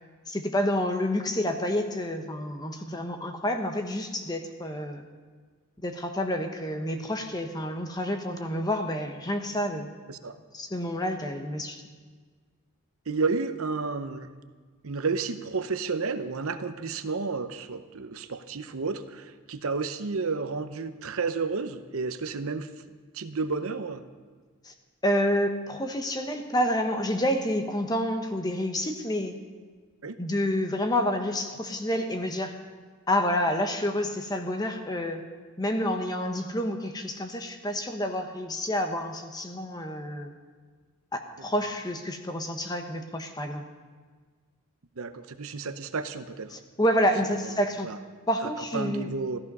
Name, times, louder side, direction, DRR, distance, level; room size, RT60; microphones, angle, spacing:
voice 1, 0.3-5.1 5.8-9.9 10.5-11.8 24.6-24.7 25.0-29.4 30.2-32.5 33.1-35.2 35.6-40.3 41.1-43.6 46.5-47.9 48.3-49.1, equal, 15° left, 5 dB, 1.0 m, -29 dB
voice 2, 13.1-14.3 14.8-22.7 23.1-24.0 30.0-30.2 45.0-46.5 47.8-48.0 48.7-49.4, right 4 dB, 70° right, 10 dB, 0.8 m, -31 dB
14.5 x 14.0 x 5.5 m, 1.5 s
head